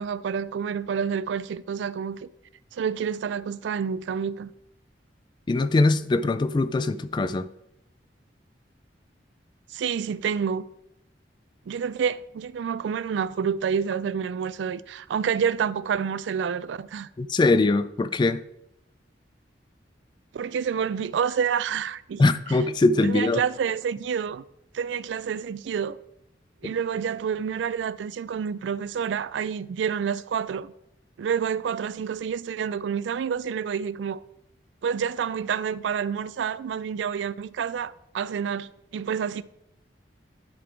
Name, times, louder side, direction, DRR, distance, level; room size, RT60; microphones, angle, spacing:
voice 1, 0.0-2.3 2.7-4.5 9.7-10.7 11.7-17.1 20.3-22.2 23.0-24.4 24.7-26.0 26.6-30.7 31.2-34.2 34.8-39.4, right 7 dB, 85° right, 0.3 m, -28 dB
voice 2, 5.5-7.5 17.2-18.4 22.2-23.4, left 2 dB, 25° left, 0.3 m, -22 dB
11.0 x 4.1 x 4.5 m
head